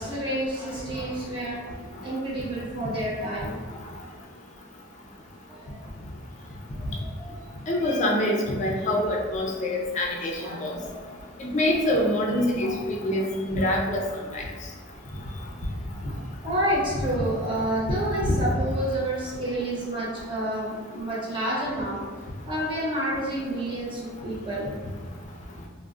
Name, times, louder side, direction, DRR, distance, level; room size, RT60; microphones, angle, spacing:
voice 1, 0.0-1.6 2.0-3.6 5.5-5.8 6.8-7.4 10.4-11.1 12.6-12.7 13.1-13.2 16.4-22.0 22.4-24.7, right 1 dB, 25° right, -7 dB, 0.9 m, -29 dB
voice 2, 7.7-10.7 11.4-14.0 14.3-14.4 17.9-18.3, left 1 dB, 35° left, -1 dB, 0.5 m, -25 dB
3.6 x 2.1 x 2.4 m, 1.5 s
head